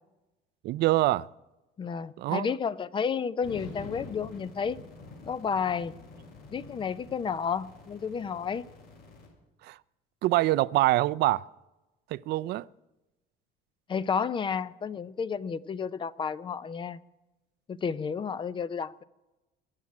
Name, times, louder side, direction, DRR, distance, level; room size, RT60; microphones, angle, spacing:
voice 1, 0.6-1.3 2.2-2.5 9.6-9.8 10.2-11.4 12.1-12.7, right 17 dB, 55° right, 0.4 m, -25 dB
voice 2, 1.8-4.8 5.3-5.9 6.5-8.6 13.9-17.0 17.7-19.0, left 6 dB, 25° left, 0.5 m, -31 dB
sound 1, 3.4-9.3, left 3 dB, 50° left, 5.1 m, -47 dB
21.5 x 7.3 x 8.7 m
cardioid pair, 140°, 20 cm